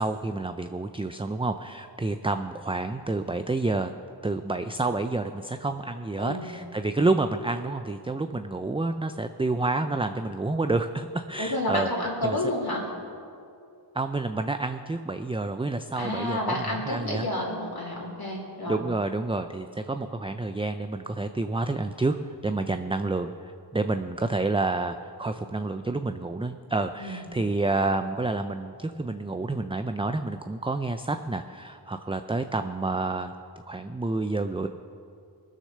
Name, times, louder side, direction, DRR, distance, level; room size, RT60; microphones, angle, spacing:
voice 1, 0.0-3.9 4.2-11.9 12.2-12.4 13.9-16.5 16.9-17.3 18.7-22.2 22.4-33.3 33.7-34.7, right 2 dB, 15° right, 8 dB, 0.4 m, -29 dB
voice 2, 6.2-6.5 11.4-12.9 16.0-18.8 27.0-27.3, left 1 dB, 55° left, -4 dB, 2.8 m, -30 dB
20.0 x 6.6 x 6.6 m, 2.4 s
wide cardioid pair, 45°, 44 cm